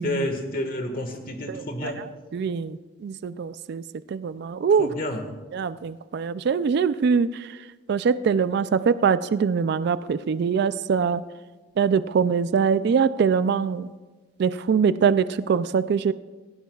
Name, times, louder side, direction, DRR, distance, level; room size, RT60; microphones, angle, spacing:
voice 1, 0.0-2.0 4.8-5.3, left 1 dB, 50° left, 5 dB, 1.6 m, -29 dB
voice 2, 2.3-2.8 3.0-3.8 4.1-4.9 5.5-7.3 7.9-11.2 11.8-13.9 14.4-16.1, right 6 dB, 60° right, 14 dB, 0.3 m, -23 dB
17.5 x 16.0 x 2.3 m, 1.3 s
head